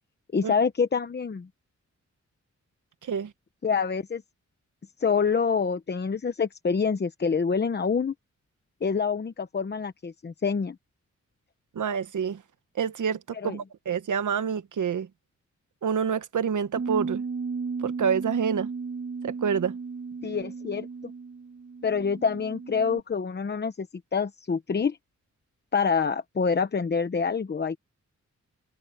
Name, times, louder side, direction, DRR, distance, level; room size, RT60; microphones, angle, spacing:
voice 1, 0.3-1.5 3.6-4.2 5.0-8.1 8.8-10.8 13.3-13.6 20.2-20.9 21.8-23.9 24.1-25.0 25.7-27.8, left 5 dB, 35° left, 1.0 m, -26 dB
voice 2, 11.7-12.4 12.8-15.1 15.8-17.2 17.8-18.7 19.2-19.8, right 7 dB, 85° right, 1.4 m, -27 dB
Bass guitar, 16.8-23.0, right 5 dB, 50° right, 2.9 m, -35 dB
wide cardioid pair, 135°, 30 cm